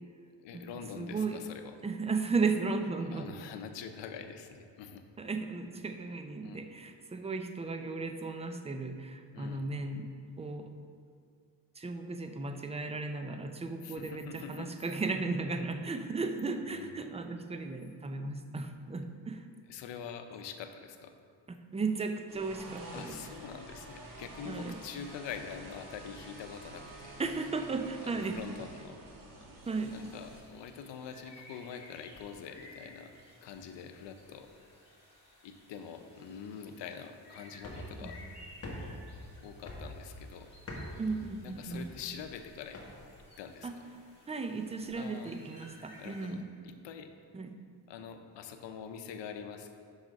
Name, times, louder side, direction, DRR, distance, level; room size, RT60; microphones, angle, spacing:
voice 1, 0.4-1.7 3.1-5.0 6.4-6.6 9.3-9.7 13.8-14.7 16.6-16.9 19.7-21.1 22.9-27.2 28.0-29.0 29.9-33.1 33.4-34.5 35.4-38.2 39.4-40.5 41.4-42.8 43.4-43.8 44.9-45.4 46.0-47.1 47.9-49.7, left 7 dB, 85° left, 7 dB, 0.7 m, -45 dB
voice 2, 1.0-1.4 1.8-3.3 5.2-10.1 10.4-10.7 11.8-19.5 21.5-23.2 24.5-24.8 27.2-28.4 29.7-29.9 38.0-38.1 41.0-41.9 43.6-43.7 44.3-46.4 47.3-47.6, right 3 dB, 15° right, 7 dB, 0.4 m, -35 dB
sound 1, 22.3-30.4, right 1 dB, 50° right, 1.2 m, -49 dB
sound 2, 29.6-46.3, left 1 dB, 15° left, 2.0 m, -57 dB
sound 3, 37.6-43.2, left 1 dB, 35° left, 1.4 m, -45 dB
6.2 x 5.7 x 5.1 m, 2.1 s
cardioid pair, 110°, 42 cm